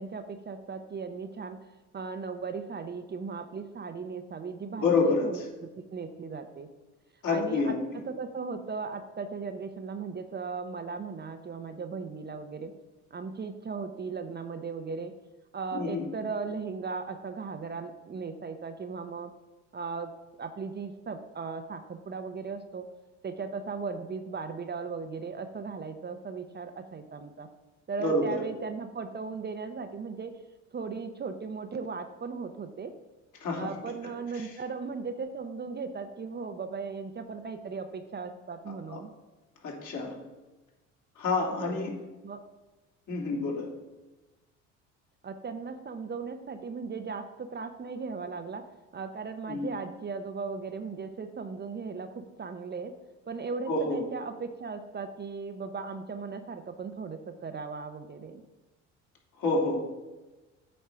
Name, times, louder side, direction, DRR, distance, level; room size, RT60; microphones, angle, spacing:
voice 1, 0.0-1.6 1.9-6.7 7.3-7.8 8.1-12.7 13.1-15.1 15.5-19.3 19.7-20.1 20.4-22.9 23.2-27.5 27.9-30.3 30.7-32.9 33.5-39.1 41.6-41.9 42.2-42.4 43.3-43.5 45.2-48.6 48.9-52.9 53.3-58.4, right 5 dB, 25° right, 7 dB, 0.7 m, -37 dB
voice 2, 4.8-5.4 7.2-7.8 15.7-16.1 28.0-28.4 33.4-33.7 34.3-34.5 38.9-39.0 39.6-40.1 41.2-41.9 43.1-43.7 49.5-49.7 53.7-54.0 59.4-59.8, left 3 dB, 50° left, -1 dB, 2.8 m, -28 dB
8.5 x 4.2 x 6.0 m, 1.1 s
hypercardioid pair, 70°, 37 cm